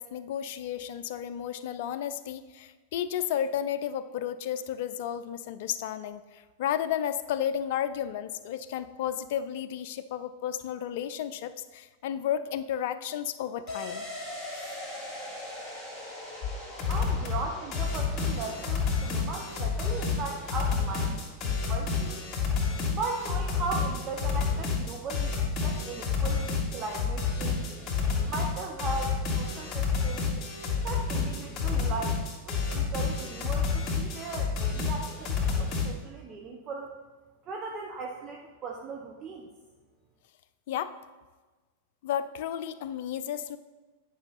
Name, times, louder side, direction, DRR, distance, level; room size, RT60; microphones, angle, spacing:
voice 1, 0.0-14.1 14.6-14.7 40.7-41.0 42.0-43.6, left 10 dB, 50° left, 13 dB, 0.4 m, -33 dB
sound 1, 13.7-23.1 23.4-23.5, left 1 dB, 10° right, 2.5 m, -43 dB
sound 2, 16.4-16.5 16.8-17.4 17.7-35.9, left 5 dB, 25° left, 2.3 m, -29 dB
voice 2, 16.9-22.1 22.9-27.7 28.2-30.2 30.8-32.2 32.5-36.9 37.5-39.5, right 3 dB, 30° right, 0 dB, 0.8 m, -37 dB
9.6 x 5.6 x 3.9 m, 1.3 s
figure-of-eight pair, 90°, 0 cm